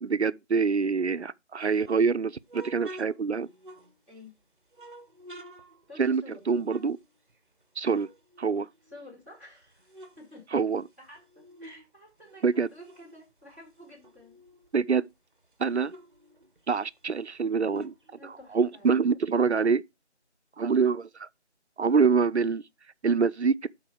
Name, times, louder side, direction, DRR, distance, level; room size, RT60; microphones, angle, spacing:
voice 1, 0.0-3.5 6.0-6.2 6.5-7.0 7.8-8.1 8.4-8.7 10.5-10.8 12.4-12.7 14.7-15.1 15.6-15.9 16.7-17.9 18.2-19.8 20.6-21.3 21.8-22.6 23.0-23.7, right 5 dB, 70° right, 0.6 m, -25 dB
sound 1, 1.6-4.3 4.7-7.6 7.9-9.2 9.6-11.9 12.2-14.7 15.1-15.2 15.4-18.9, right 1 dB, 45° right, 1.0 m, -50 dB
voice 2, 5.9-6.4 8.9-10.6 11.0-14.4 18.2-18.9, left 1 dB, 10° left, 2.7 m, -50 dB
12.0 x 4.0 x 4.5 m
figure-of-eight pair, 175°, 35 cm